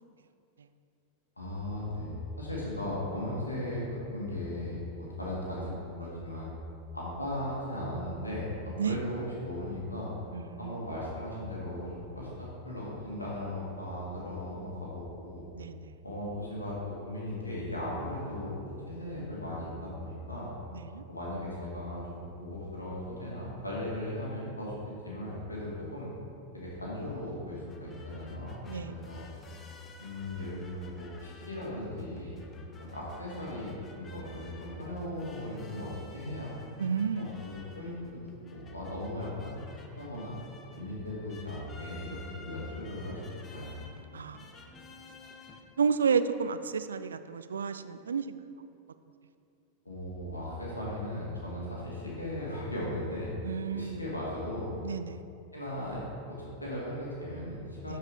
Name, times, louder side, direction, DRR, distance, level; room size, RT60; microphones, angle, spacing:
voice 1, 1.4-3.9 4.1-5.7 6.0-6.5 6.9-10.1 10.6-15.4 16.0-20.5 21.1-24.7 25.0-26.1 26.5-29.3 30.0-32.4 32.8-36.5 37.2-38.1 38.5-39.6 40.0-40.3 40.8-43.2 43.5-43.8 49.9-53.3 53.7-54.7 55.5-58.0, left 1 dB, 80° left, -5 dB, 1.9 m, -37 dB
voice 2, 10.3-10.7 15.5-16.0 20.7-21.0 28.7-28.9 36.8-37.3 44.1-44.5 45.8-48.7 53.4-54.0 54.8-55.2 57.9-58.0, right 6 dB, 70° right, 12 dB, 0.3 m, -31 dB
sound 1, 27.5-45.6, left 3 dB, 25° left, 0.7 m, -53 dB
11.5 x 4.8 x 3.6 m, 2.6 s
figure-of-eight pair, 90°, 0 cm